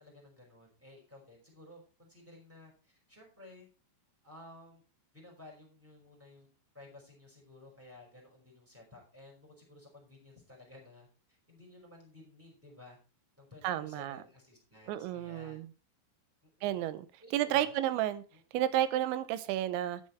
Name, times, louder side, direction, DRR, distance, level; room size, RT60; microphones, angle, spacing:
voice 1, 0.0-3.7 4.2-4.8 5.1-13.0 13.4-15.6 16.4-16.8 17.2-17.7 18.3-18.4, left 2 dB, 5° right, -1 dB, 4.6 m, -55 dB
voice 2, 13.6-14.2 14.9-15.7 16.6-17.1 17.3-18.2 18.5-20.0, right 13 dB, 80° right, 14 dB, 3.0 m, -31 dB
11.5 x 7.6 x 4.5 m, 0.33 s
omnidirectional pair, 5.5 m